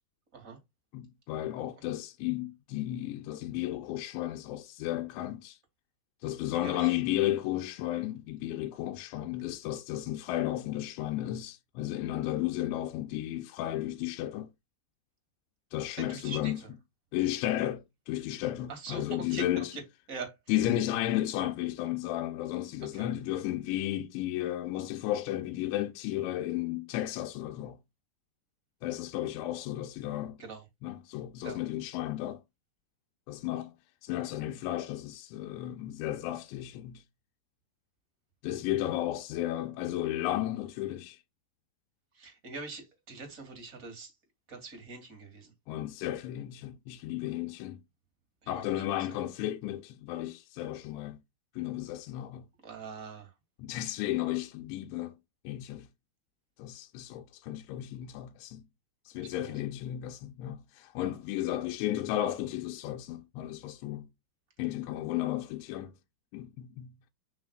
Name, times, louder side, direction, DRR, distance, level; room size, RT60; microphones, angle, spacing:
voice 1, 0.9-5.6 6.2-14.5 15.7-16.6 17.1-19.7 20.5-27.8 28.8-30.4 30.8-32.4 33.3-33.7 34.0-37.0 38.4-41.2 45.7-47.8 48.5-51.2 51.5-52.4 53.6-55.2 55.4-55.9 56.6-58.6 59.1-64.1 64.6-65.9 66.3-67.1, left 14 dB, 85° left, 3.0 m, -33 dB
voice 2, 6.2-7.0 16.0-16.7 18.7-19.8 20.1-20.4 22.9-23.1 30.4-30.6 31.4-31.6 42.1-44.1 44.5-45.5 47.2-47.4 48.4-48.9 52.6-53.3 59.1-59.6, right 3 dB, 25° right, 2.2 m, -43 dB
9.7 x 5.8 x 2.4 m
omnidirectional pair, 5.1 m